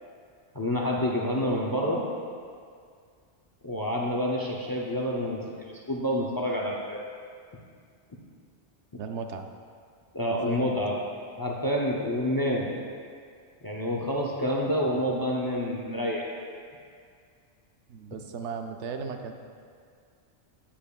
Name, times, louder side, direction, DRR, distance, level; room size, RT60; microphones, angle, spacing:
voice 1, 0.5-2.0 3.6-7.1 10.1-11.0 11.4-12.7 13.6-16.3, equal, 30° left, -2 dB, 0.4 m, -28 dB
voice 2, 9.0-9.5 10.3-10.8 17.9-19.3, right 5 dB, 90° right, 5 dB, 0.9 m, -36 dB
8.4 x 8.2 x 2.3 m, 2.2 s
omnidirectional pair, 1.1 m